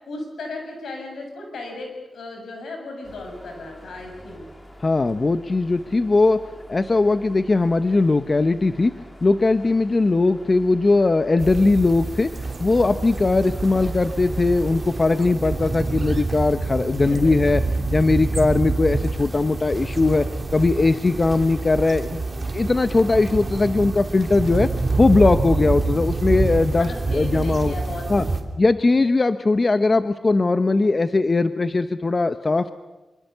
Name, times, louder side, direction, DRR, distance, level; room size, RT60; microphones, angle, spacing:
voice 1, 0.0-4.4 17.1-17.3 26.7-28.3, left 2 dB, 85° left, 3 dB, 7.7 m, -35 dB
sound 1, 3.0-15.3, equal, 20° left, 3.5 m, -45 dB
voice 2, 4.8-8.9 9.2-12.3 12.6-17.6 17.9-20.3 20.5-22.2 22.5-24.7 25.0-27.7 28.1-28.3 28.6-32.7, left 3 dB, 35° left, 10 dB, 0.9 m, -19 dB
sound 2, 11.4-28.4, right 3 dB, 35° right, 3.1 m, -27 dB
25.5 x 25.0 x 6.8 m, 1.1 s
cardioid pair, 85°, 0 cm